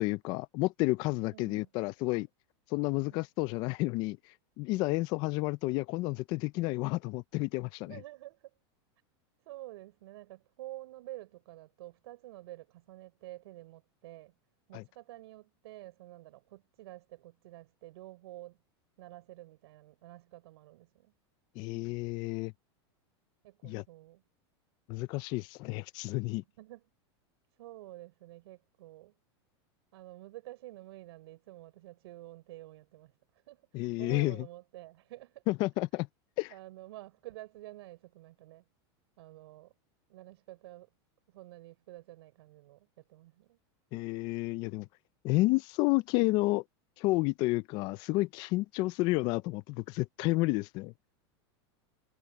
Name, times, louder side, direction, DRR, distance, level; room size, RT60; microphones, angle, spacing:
voice 1, 0.0-2.3 2.7-4.2 4.6-7.9 14.7-14.8 21.6-22.5 23.6-23.8 24.9-26.4 33.7-34.4 35.5-36.1 36.4-36.5 43.9-44.9 45.2-46.6 47.0-50.9, left 21 dB, 30° left, 0.3 m, -30 dB
voice 2, 1.3-1.7 2.9-3.2 7.8-8.5 9.4-14.3 14.7-18.6 19.0-21.1 23.4-24.2 26.6-26.8 27.6-29.1 29.9-35.4 36.5-38.6 39.2-39.7 40.1-40.9 41.3-43.6, right 17 dB, 70° right, 6.2 m, -49 dB
supercardioid pair, 165°, 14 cm